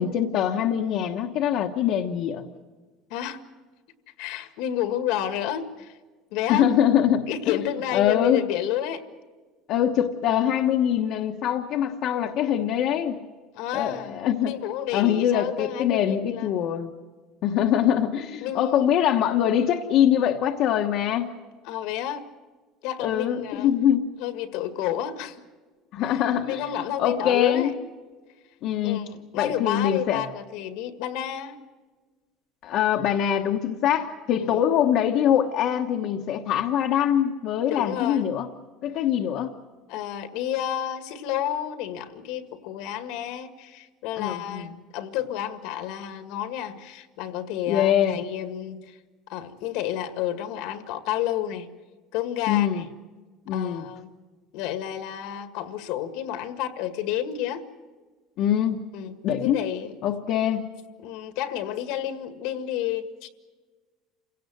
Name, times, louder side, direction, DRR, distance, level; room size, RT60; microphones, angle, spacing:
voice 1, 0.0-2.4 6.5-7.3 7.9-8.5 9.7-13.2 13.7-14.5 14.9-16.9 17.4-21.4 23.0-24.1 25.9-27.7 28.6-29.0 29.3-30.2 32.6-38.5 38.8-39.5 44.2-44.7 47.7-48.2 52.5-52.8 53.5-53.8 58.4-58.8 59.2-59.6 60.0-60.6, left 10 dB, 50° left, 2 dB, 1.2 m, -23 dB
voice 2, 3.1-3.4 4.2-6.0 6.3-6.7 7.3-9.0 13.5-14.2 14.5-16.5 18.4-18.9 21.6-22.2 22.8-23.7 24.2-25.4 26.0-27.7 28.8-31.6 34.3-34.6 37.7-38.2 39.9-49.0 49.3-51.7 52.1-52.9 53.5-54.1 54.5-57.7 58.9-60.0 61.0-63.3, left 11 dB, 70° left, 9 dB, 1.8 m, -30 dB
28.0 x 17.0 x 7.9 m, 1.4 s
cardioid pair, 150°, 0 cm